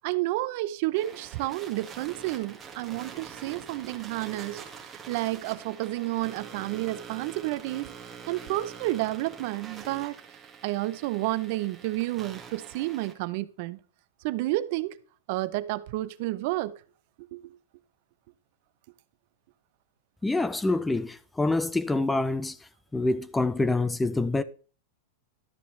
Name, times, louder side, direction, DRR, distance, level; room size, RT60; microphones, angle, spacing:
voice 1, 0.0-4.6 5.1-7.9 8.3-10.2 10.6-13.8 14.2-15.0 15.3-16.8 17.3-17.4, right 17 dB, 55° right, 0.5 m, -30 dB
sound 1, 0.9-13.1, right 6 dB, 20° right, 1.6 m, -45 dB
voice 2, 20.2-22.6 22.9-24.4, left 2 dB, 10° left, 0.4 m, -26 dB
12.0 x 6.9 x 3.2 m
supercardioid pair, 135°, 0 cm